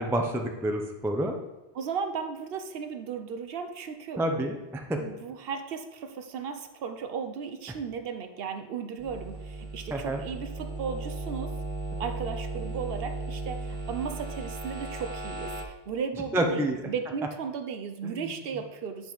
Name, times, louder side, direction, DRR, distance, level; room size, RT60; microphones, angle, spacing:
voice 1, 0.0-1.4 4.2-5.0 9.9-10.2 16.3-16.8 18.0-18.3, right 1 dB, 5° right, 3 dB, 0.3 m, -28 dB
voice 2, 1.7-4.2 4.9-11.5 12.0-19.1, right 6 dB, 65° right, 8 dB, 0.8 m, -35 dB
sound 1, 9.0-15.6, right 2 dB, 35° right, 0.7 m, -36 dB
8.5 x 5.3 x 3.1 m, 1.1 s
omnidirectional pair, 1.1 m